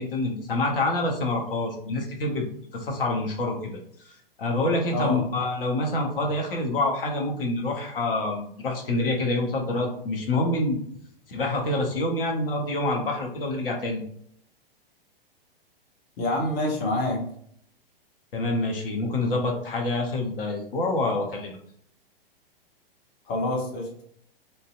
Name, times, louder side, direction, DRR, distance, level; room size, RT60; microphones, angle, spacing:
voice 1, 0.0-2.4 2.7-3.8 4.0-10.8 11.3-14.0 18.3-21.6, left 2 dB, 65° left, 1 dB, 0.7 m, -27 dB
voice 2, 4.9-5.2 16.2-17.2 23.3-23.9, left 1 dB, 25° left, -1 dB, 0.7 m, -26 dB
2.5 x 2.0 x 2.4 m, 0.66 s
figure-of-eight pair, 110°, 30 cm